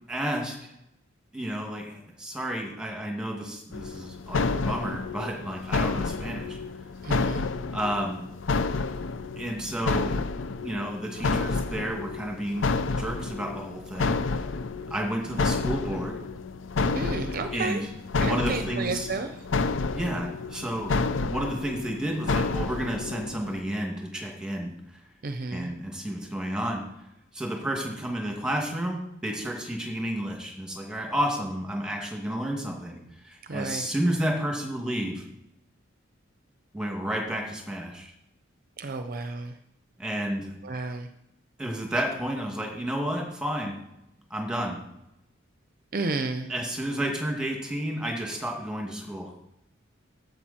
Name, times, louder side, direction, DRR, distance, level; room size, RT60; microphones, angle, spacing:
voice 1, 0.1-0.7 1.3-6.6 7.7-8.2 9.4-10.2 10.6-14.4 14.9-16.2 17.5-17.9 18.2-19.1 19.9-20.9 21.2-25.0 25.5-26.8 27.3-35.2 36.7-38.1 40.0-40.5 41.6-43.8 44.3-44.8 46.5-49.3, right 1 dB, 5° right, 0 dB, 2.3 m, -31 dB
sound 1, 3.7-23.6, left 4 dB, 70° left, 0.6 m, -30 dB
voice 2, 7.0-7.5 16.9-17.8 18.2-19.3 25.2-25.7 33.5-33.9 38.8-39.5 40.6-41.1 45.9-46.5, right 3 dB, 45° right, 7 dB, 0.6 m, -31 dB
12.0 x 8.0 x 4.4 m, 0.84 s
head